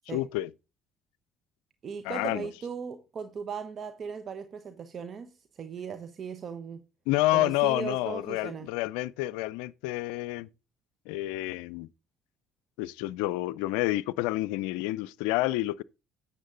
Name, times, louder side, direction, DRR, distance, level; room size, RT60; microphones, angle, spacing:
voice 1, 0.1-0.5 2.0-2.5 7.1-10.5 11.1-11.9 12.8-15.8, left 18 dB, 80° left, 0.4 m, -29 dB
voice 2, 1.8-6.8 7.3-8.7, right 6 dB, 50° right, 1.1 m, -38 dB
9.9 x 7.2 x 3.8 m
hypercardioid pair, 60°, 0 cm